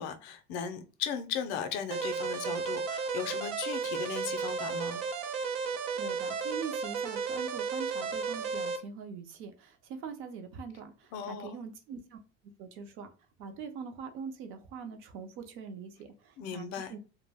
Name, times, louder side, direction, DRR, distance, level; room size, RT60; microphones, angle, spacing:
voice 1, 0.0-5.0 11.1-11.5 16.4-16.9, left 7 dB, 50° left, 0.4 m, -37 dB
sound 1, 1.9-8.8, right 5 dB, 90° right, 0.7 m, -34 dB
voice 2, 6.0-12.2 12.6-13.1 13.4-17.0, right 6 dB, 40° right, 0.4 m, -43 dB
2.2 x 2.1 x 3.3 m
cardioid pair, 165°, 33 cm